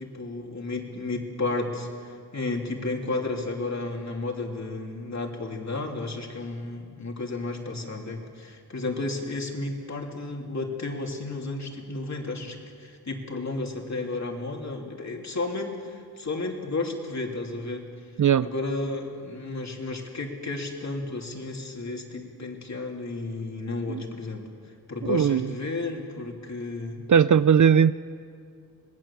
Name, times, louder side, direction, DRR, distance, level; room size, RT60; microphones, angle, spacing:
voice 1, 0.0-17.8 18.4-24.5 24.9-27.0, left 2 dB, 45° left, 1 dB, 3.1 m, -32 dB
voice 2, 25.1-25.5 27.1-27.9, right 7 dB, 50° right, 15 dB, 0.5 m, -18 dB
26.5 x 20.5 x 7.3 m, 2.3 s
wide cardioid pair, 125°, 38 cm